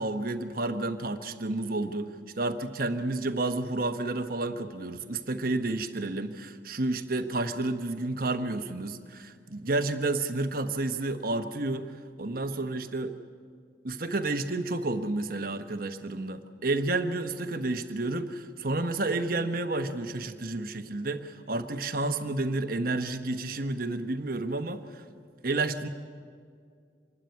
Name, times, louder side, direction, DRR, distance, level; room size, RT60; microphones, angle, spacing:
voice 1, 0.0-2.1 2.4-11.9 12.2-13.1 13.8-25.0 25.4-25.9, right 2 dB, 50° right, 8 dB, 1.1 m, -30 dB
26.0 x 12.5 x 9.5 m, 2.1 s
head